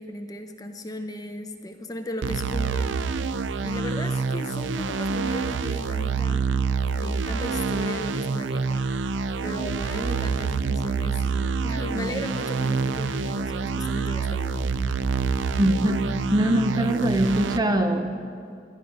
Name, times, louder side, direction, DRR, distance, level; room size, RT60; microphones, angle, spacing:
voice 1, 0.0-2.9 3.6-6.5 7.0-14.7, left 1 dB, 20° left, 5 dB, 0.7 m, -36 dB
sound 1, 2.2-17.6, right 4 dB, 70° right, 0.4 m, -27 dB
voice 2, 15.6-18.2, right 1 dB, 20° right, 6 dB, 0.5 m, -23 dB
17.0 x 10.5 x 5.3 m, 2.4 s
head